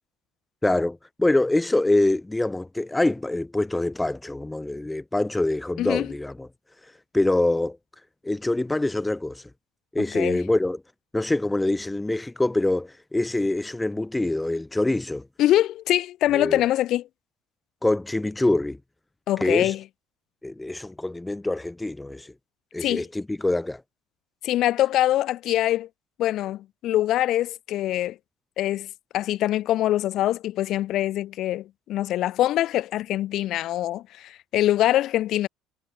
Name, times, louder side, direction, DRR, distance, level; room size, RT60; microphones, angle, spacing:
voice 1, 0.6-6.5 7.1-7.8 8.2-9.4 9.9-10.8 11.1-15.3 16.3-16.6 17.8-18.8 19.4-19.7 20.4-22.3 22.7-23.8, left 2 dB, 10° left, 5.0 m, -25 dB
voice 2, 5.8-6.1 10.1-10.4 15.4-17.1 19.3-19.8 22.8-23.1 24.4-25.9 26.2-28.2 28.6-28.9 29.1-35.5, left 13 dB, 55° left, 1.2 m, -24 dB
cardioid pair, 125°, 0 cm